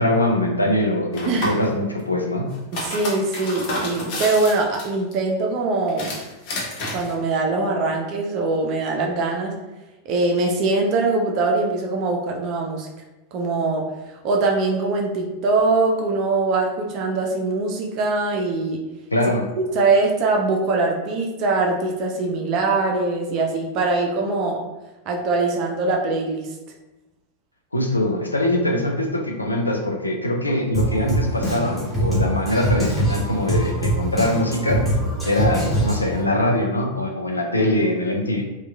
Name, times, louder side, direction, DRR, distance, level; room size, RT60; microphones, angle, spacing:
voice 1, 0.0-2.5 19.1-19.5 27.7-34.8 35.3-38.4, left 1 dB, 80° left, 1 dB, 0.3 m, -22 dB
sound 1, 1.1-1.7 2.5-5.1 5.9-7.1, left 1 dB, 45° left, 0.6 m, -30 dB
voice 2, 2.7-6.1 6.9-9.5 10.1-12.9 13.3-13.9 14.2-18.8 19.7-24.6 25.1-26.5, right 3 dB, 40° right, 1 dB, 0.3 m, -22 dB
Drum kit, 30.7-36.2, right 1 dB, 5° left, 0.8 m, -23 dB
2.8 x 2.1 x 2.2 m, 1.0 s
figure-of-eight pair, 90°, 0 cm